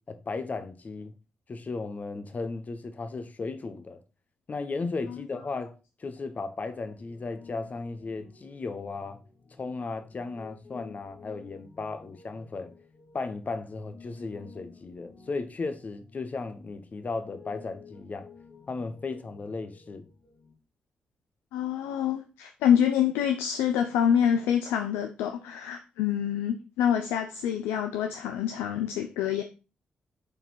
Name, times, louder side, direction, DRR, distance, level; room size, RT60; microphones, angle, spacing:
voice 1, 0.1-1.1 1.5-4.0 4.5-5.7 6.0-9.2 9.6-12.7 13.1-18.3 18.7-20.1, left 3 dB, 45° left, 1.1 m, -35 dB
Piano, 6.8-20.5, left 5 dB, 60° left, 3.2 m, -53 dB
voice 2, 21.5-29.4, left 9 dB, 85° left, 0.5 m, -26 dB
6.6 x 4.3 x 4.6 m
hypercardioid pair, 40°, 4 cm